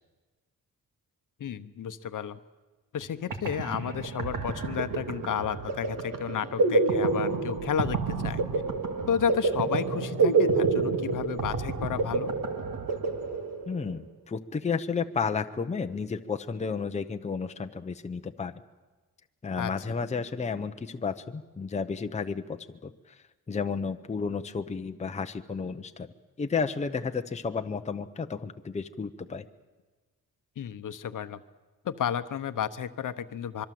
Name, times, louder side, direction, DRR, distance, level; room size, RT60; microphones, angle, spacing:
voice 1, 1.4-2.4 2.9-8.4 9.1-12.3 19.6-19.7 30.6-31.4 31.8-33.7, left 8 dB, 60° left, 12 dB, 1.0 m, -32 dB
sound 1, 3.0-3.1 3.3-13.9, right 3 dB, 65° right, 2.2 m, -28 dB
voice 2, 13.7-18.6 19.4-22.9 23.5-26.1 26.4-29.5, left 5 dB, 20° left, 7 dB, 0.7 m, -32 dB
25.0 x 23.0 x 7.7 m, 1.3 s
wide cardioid pair, 145°, 36 cm